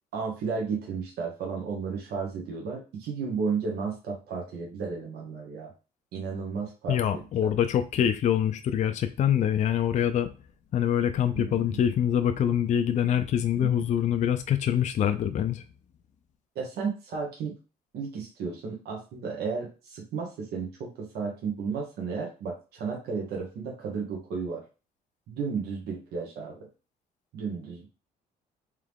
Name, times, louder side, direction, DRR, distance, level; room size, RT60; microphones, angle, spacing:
voice 1, 0.1-5.7 6.1-7.5 11.3-11.8 13.6-13.8 16.5-17.5 17.9-24.6 25.3-26.7 27.3-27.9, right 5 dB, 75° right, 1.3 m, -33 dB
voice 2, 6.9-10.3 10.7-15.6, left 9 dB, 45° left, 0.5 m, -25 dB
3.7 x 3.2 x 3.5 m
cardioid pair, 110°, 17 cm